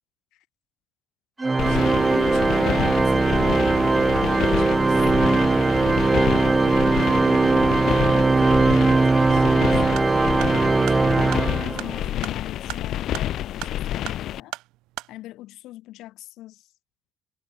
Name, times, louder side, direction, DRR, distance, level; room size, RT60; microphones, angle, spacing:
Organ, 1.4-12.0, right 3 dB, 15° right, 0.4 m, -20 dB
sound 1, 1.6-14.4, left 12 dB, 50° left, 1.0 m, -29 dB
voice 1, 1.7-10.1 10.8-14.5 15.1-16.7, left 16 dB, 65° left, 3.0 m, -40 dB
sound 2, 10.0-15.1, right 19 dB, 85° right, 4.1 m, -39 dB
cardioid pair, 175°, 0 cm